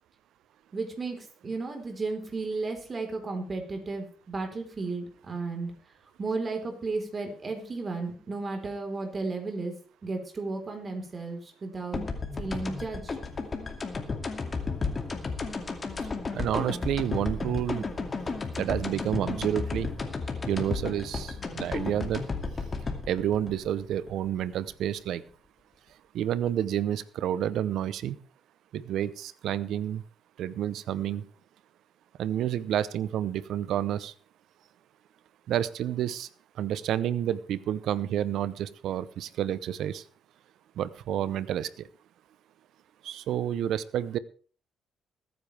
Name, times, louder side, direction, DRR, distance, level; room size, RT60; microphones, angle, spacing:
voice 1, 0.7-5.7 6.2-9.7 10.0-12.0 12.4-13.2, right 3 dB, 35° right, 4 dB, 4.1 m, -34 dB
sound 1, 11.9-24.7, left 4 dB, 35° left, 2.4 m, -33 dB
voice 2, 16.3-17.9 18.6-19.9 20.5-22.2 23.1-25.2 26.1-28.2 28.7-30.0 30.4-31.2 32.2-34.1 35.5-36.3 36.6-40.0 40.8-41.9 43.0-44.2, right 10 dB, 80° right, 17 dB, 0.7 m, -29 dB
22.0 x 9.6 x 3.4 m, 0.41 s
cardioid pair, 90°, 0 cm